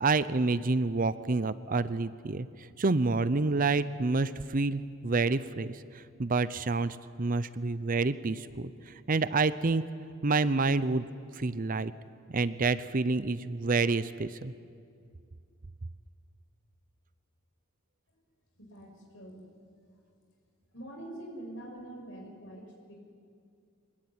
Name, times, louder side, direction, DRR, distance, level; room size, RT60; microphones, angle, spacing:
voice 1, 0.0-2.5 2.8-5.8 6.2-8.7 9.1-9.8 10.2-11.1 11.4-11.9 12.3-14.5, right 3 dB, 40° right, 15 dB, 0.6 m, -28 dB
voice 2, 18.6-19.7 20.7-22.9, right 1 dB, 65° left, 1 dB, 5.9 m, -45 dB
24.5 x 21.0 x 9.4 m, 2.3 s
head